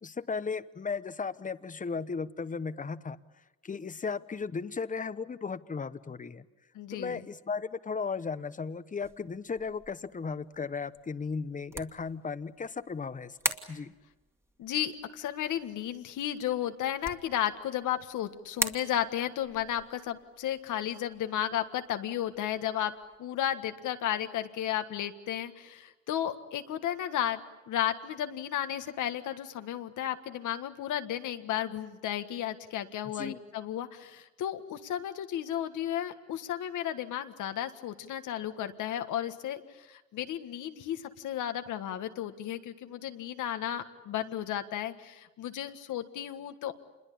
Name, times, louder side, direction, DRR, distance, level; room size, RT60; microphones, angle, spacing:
voice 1, 0.0-3.2 3.6-6.4 6.9-13.4 13.7-13.9 33.2-33.4, left 5 dB, 25° left, 14 dB, 1.0 m, -35 dB
voice 2, 6.7-7.2 14.6-22.9 23.2-46.7, left 11 dB, 80° left, 8 dB, 1.6 m, -33 dB
Light Switch - Plastic - Turning On and Off, 9.0-23.2, right 1 dB, 10° right, 2.0 m, -42 dB
27.0 x 21.5 x 8.6 m, 1.1 s
cardioid pair, 90°, 30 cm